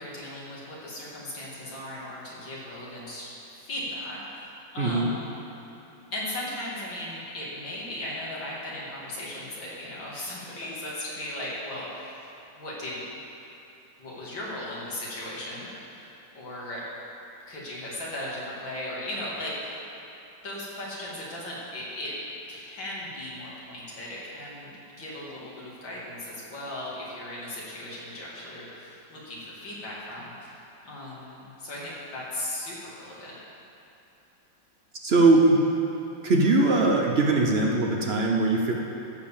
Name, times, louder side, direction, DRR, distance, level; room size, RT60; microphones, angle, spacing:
voice 1, 0.0-5.5 6.1-12.1 12.6-13.0 14.0-16.8 17.5-19.8 20.4-22.1 22.5-33.4, left 1 dB, 85° left, -6 dB, 3.2 m, -37 dB
voice 2, 4.8-5.1 35.0-35.6 36.2-38.7, right 2 dB, 55° right, 0 dB, 0.7 m, -21 dB
14.5 x 5.2 x 7.2 m, 2.8 s
omnidirectional pair, 2.0 m